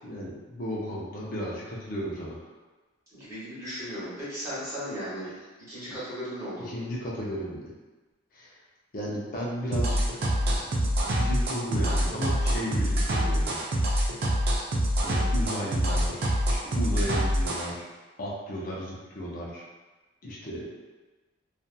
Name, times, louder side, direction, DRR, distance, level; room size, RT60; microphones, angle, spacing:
voice 1, 0.0-2.4 6.7-7.7 8.3-8.5 8.9-10.0 10.4-13.6 13.9-14.2 15.0-17.8 18.2-19.7 20.2-20.7, equal, 40° left, -5 dB, 0.5 m, -35 dB
voice 2, 3.1-5.3 5.7-6.8, equal, 15° right, -13 dB, 1.3 m, -36 dB
sound 1, 9.7-17.7, equal, 50° right, 0.4 m, -25 dB
2.7 x 2.4 x 2.2 m, 1.2 s
head